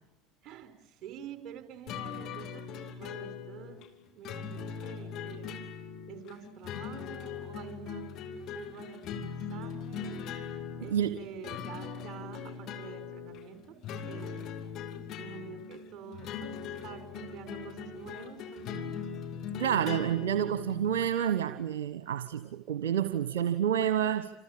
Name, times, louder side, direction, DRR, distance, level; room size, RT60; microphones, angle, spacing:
voice 1, 0.4-3.8 4.1-5.6 6.1-8.1 8.5-10.3 10.8-13.8 14.0-14.5 15.2-19.0, right 8 dB, 45° right, 5.7 m, -47 dB
sound 1, 1.9-21.1, left 6 dB, 50° left, 3.0 m, -40 dB
voice 2, 19.6-24.3, right 9 dB, 70° right, 1.3 m, -29 dB
29.0 x 28.0 x 6.9 m
figure-of-eight pair, 70°, 0 cm